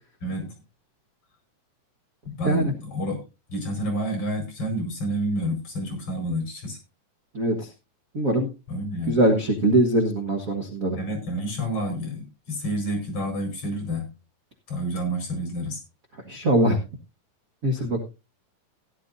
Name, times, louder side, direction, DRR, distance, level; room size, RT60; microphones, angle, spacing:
voice 1, 0.2-0.5 2.4-3.2 3.5-6.8 8.7-9.2 11.0-14.1 14.7-15.8, equal, 45° left, 4 dB, 5.6 m, -29 dB
voice 2, 7.3-7.7 8.1-8.5 9.1-11.0 16.3-16.8 17.6-18.0, right 1 dB, 50° right, 3 dB, 0.9 m, -22 dB
16.0 x 11.5 x 2.6 m, 0.27 s
omnidirectional pair, 3.8 m